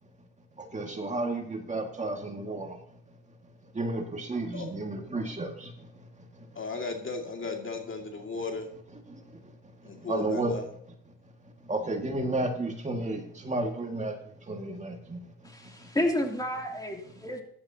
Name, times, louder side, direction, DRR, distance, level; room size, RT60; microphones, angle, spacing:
voice 1, 0.7-2.7 3.8-5.7 10.1-10.5 11.7-14.1 14.5-15.2, right 2 dB, 25° right, 2 dB, 2.0 m, -32 dB
voice 2, 6.6-8.7 9.8-10.6, left 3 dB, 40° left, 3 dB, 2.2 m, -35 dB
voice 3, 15.4-17.4, left 1 dB, 10° left, 2 dB, 3.0 m, -30 dB
15.0 x 11.5 x 2.9 m, 0.67 s
cardioid pair, 90°, 30 cm